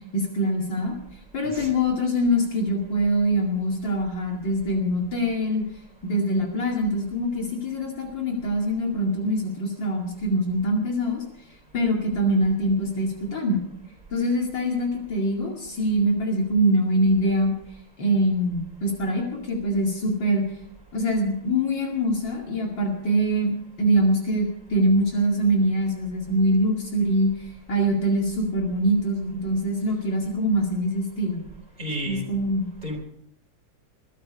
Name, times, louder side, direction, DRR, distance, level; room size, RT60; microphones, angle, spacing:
voice 1, 0.1-0.9 1.3-5.6 6.0-11.2 11.7-13.6 14.1-17.5 18.0-20.4 20.9-23.5 23.8-27.3 27.7-31.4 32.1-32.7, equal, 65° left, 0 dB, 3.1 m, -24 dB
voice 2, 31.8-32.2 32.8-33.0, equal, 20° right, 0 dB, 4.5 m, -32 dB
22.0 x 12.0 x 5.2 m, 0.74 s
omnidirectional pair, 2.2 m